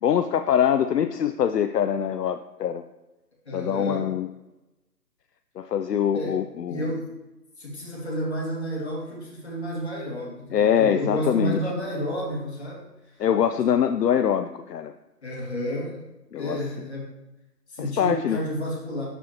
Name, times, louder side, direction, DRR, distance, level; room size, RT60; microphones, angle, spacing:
voice 1, 0.0-2.8 3.5-4.3 5.6-6.9 10.5-11.6 13.2-14.9 16.3-16.6 17.8-18.4, left 9 dB, 75° left, 9 dB, 0.5 m, -23 dB
voice 2, 3.5-4.1 6.1-6.4 6.7-7.1 7.6-13.2 15.2-16.0 16.4-17.1 17.7-19.1, equal, 40° left, -2 dB, 2.1 m, -31 dB
12.0 x 4.3 x 3.0 m, 1.0 s
figure-of-eight pair, 175°, 49 cm